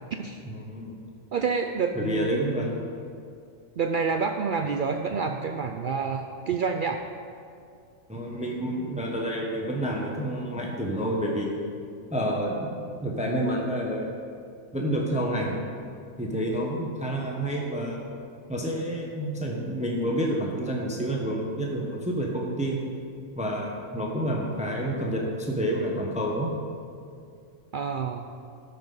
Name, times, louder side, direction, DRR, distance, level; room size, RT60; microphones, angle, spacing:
voice 1, 0.4-1.0 1.9-2.8 8.1-11.5 12.1-14.1 14.7-15.5 16.2-18.1 18.5-22.8 23.4-26.5, right 1 dB, 5° right, -1 dB, 1.0 m, -29 dB
voice 2, 1.3-2.7 3.8-7.0 27.7-28.3, right 5 dB, 80° right, 4 dB, 0.4 m, -28 dB
13.5 x 6.0 x 5.4 m, 2.3 s
omnidirectional pair, 1.4 m